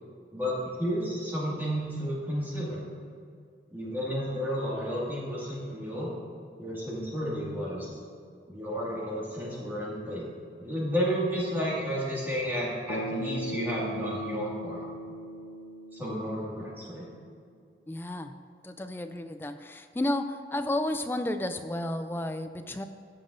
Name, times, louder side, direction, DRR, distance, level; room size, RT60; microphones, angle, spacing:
voice 1, 0.3-2.8 3.7-6.1 6.6-7.9 8.5-10.3 10.6-14.8 15.9-17.1, equal, 10° right, -6 dB, 1.9 m, -32 dB
Bass guitar, 12.9-17.1, equal, 75° left, 0.9 m, -38 dB
voice 2, 17.9-18.3 18.6-22.8, left 1 dB, 10° left, 8 dB, 0.3 m, -32 dB
15.0 x 7.3 x 2.6 m, 2.3 s
head